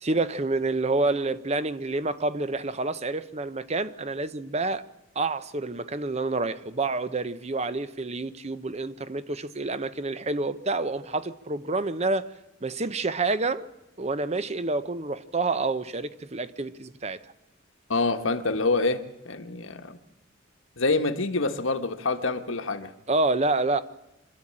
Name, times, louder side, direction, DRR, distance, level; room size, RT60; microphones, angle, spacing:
voice 1, 0.0-4.8 5.1-12.3 12.6-13.7 14.0-17.2 23.1-23.8, right 3 dB, 30° right, 0.8 m, -28 dB
voice 2, 17.9-20.0 20.8-22.9, left 3 dB, 75° left, 1.4 m, -26 dB
25.5 x 12.5 x 8.7 m
head